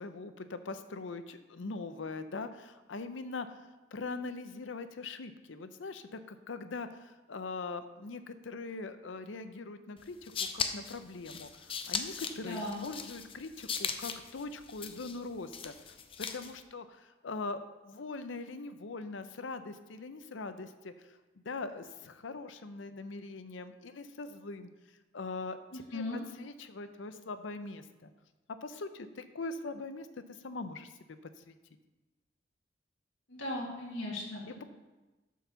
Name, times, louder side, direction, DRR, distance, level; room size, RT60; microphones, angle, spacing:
voice 1, 0.0-3.6 3.9-21.2 21.4-24.7 25.1-26.0 26.4-28.1 28.6-31.2 31.5-31.6 34.5-34.6, left 3 dB, 70° left, 10 dB, 0.6 m, -42 dB
sound 1, 10.0-16.6, left 6 dB, 30° left, 0.5 m, -39 dB
voice 2, 12.4-12.8 25.7-26.2 33.3-34.6, left 1 dB, 90° left, -3 dB, 1.9 m, -38 dB
9.0 x 4.7 x 6.8 m, 1.1 s
head